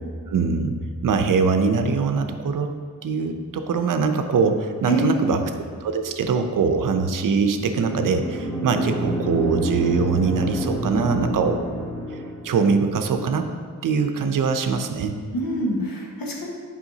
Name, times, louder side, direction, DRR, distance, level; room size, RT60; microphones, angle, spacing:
voice 1, 0.3-0.7 1.0-2.7 3.0-5.4 5.8-11.6 12.1-13.5 13.8-15.2, right 5 dB, 65° right, 7 dB, 0.6 m, -22 dB
voice 2, 4.9-5.4 15.3-16.5, right 1 dB, 80° left, -2 dB, 1.5 m, -25 dB
sound 1, 7.6-12.5, right 1 dB, 15° left, 1.2 m, -28 dB
7.8 x 5.5 x 2.8 m, 2.1 s
cardioid pair, 60°, 34 cm